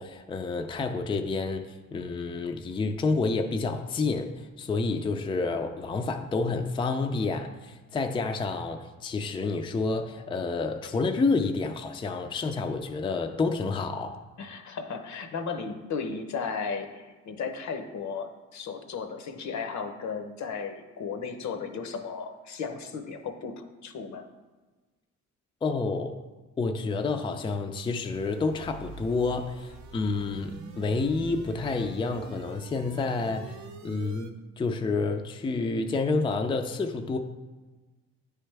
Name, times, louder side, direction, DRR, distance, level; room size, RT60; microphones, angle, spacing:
voice 1, 0.0-14.2 25.6-26.2 26.6-37.2, left 3 dB, 15° left, 5 dB, 0.4 m, -29 dB
voice 2, 14.4-24.2, left 5 dB, 65° left, 7 dB, 0.8 m, -35 dB
sound 1, 28.1-34.3, right 4 dB, 70° right, 0.6 m, -45 dB
9.7 x 3.3 x 3.3 m, 1.3 s
cardioid pair, 90°, 30 cm